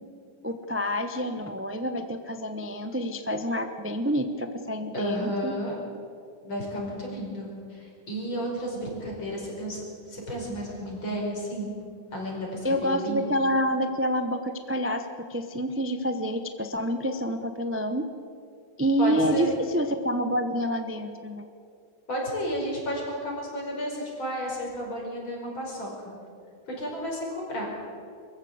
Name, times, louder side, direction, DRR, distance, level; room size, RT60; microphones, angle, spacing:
voice 1, 0.4-5.5 12.6-18.0 18.8-21.5, equal, 15° right, 7 dB, 0.4 m, -28 dB
voice 2, 4.9-5.8 6.5-11.7 12.1-13.3 19.0-19.6 22.1-26.1 26.7-27.7, equal, 75° left, -2 dB, 5.9 m, -32 dB
24.0 x 14.5 x 8.1 m, 2.5 s
omnidirectional pair, 2.2 m